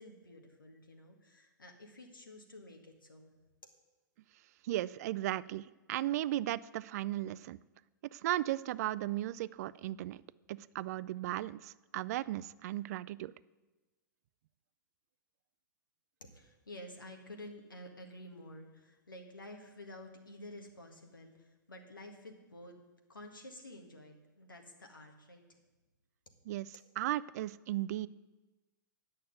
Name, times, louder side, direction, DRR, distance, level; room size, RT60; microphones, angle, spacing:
voice 1, 0.0-3.3 16.2-22.8 23.1-25.6, left 1 dB, 90° left, 3 dB, 1.8 m, -51 dB
voice 2, 4.6-7.6 8.1-10.2 10.5-13.3 26.5-28.1, right 14 dB, 50° right, 18 dB, 0.4 m, -36 dB
9.4 x 6.5 x 7.9 m, 1.1 s
hypercardioid pair, 110°, 11 cm